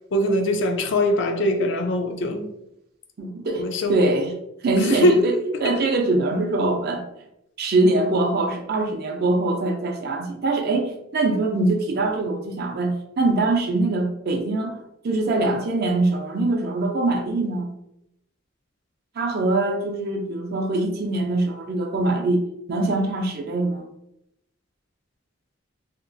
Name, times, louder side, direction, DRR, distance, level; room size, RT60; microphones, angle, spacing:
voice 1, 0.1-2.5 3.6-4.0 4.8-5.2, left 1 dB, 65° left, 0.4 m, -22 dB
voice 2, 3.2-4.3 4.6-7.0 7.6-14.8 15.0-17.7 19.2-22.4 22.7-23.9, right 2 dB, 55° right, 0.4 m, -23 dB
2.9 x 2.3 x 2.5 m
head